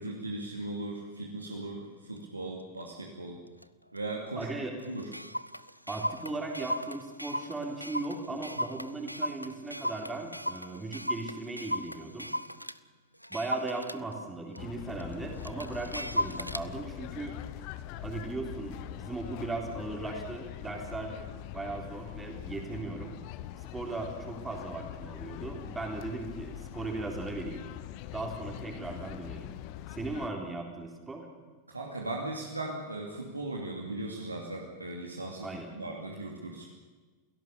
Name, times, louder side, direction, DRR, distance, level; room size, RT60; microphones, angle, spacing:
voice 1, 0.0-3.4 3.9-4.5 4.8-5.1 31.7-35.5 35.7-36.7, right 2 dB, 80° right, 0 dB, 2.7 m, -38 dB
Clock, 2.2-2.3 2.8-3.0 3.6-3.7 4.0-4.1 4.4-4.5 4.8-12.8 13.2-16.7, equal, 90° left, 0.6 m, -36 dB
voice 2, 4.4-4.7 5.9-12.3 13.3-17.4 18.0-23.1 23.6-27.6 28.1-29.5 29.9-31.3 35.4-35.7, right 3 dB, 10° right, 1 dB, 3.9 m, -37 dB
sound 1, 14.6-30.3, left 13 dB, 45° left, 1.1 m, -43 dB
29.0 x 17.0 x 7.0 m, 1.4 s
figure-of-eight pair, 90°, 0 cm